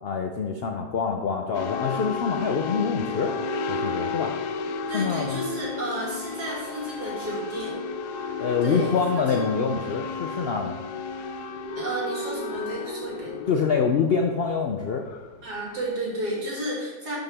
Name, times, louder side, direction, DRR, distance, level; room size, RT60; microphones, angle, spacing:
voice 1, 0.0-3.4 3.7-4.3 4.9-5.4 8.4-10.8 13.5-15.0, left 5 dB, 65° left, 3 dB, 0.6 m, -25 dB
sound 1, 1.5-15.8, left 4 dB, 85° left, 1.2 m, -33 dB
voice 2, 4.9-7.7 8.2-8.3 8.6-8.9 9.3-9.5 11.7-13.4 15.4-17.2, right 1 dB, 85° right, -4 dB, 3.1 m, -32 dB
11.0 x 5.8 x 3.5 m, 1.2 s
omnidirectional pair, 1.7 m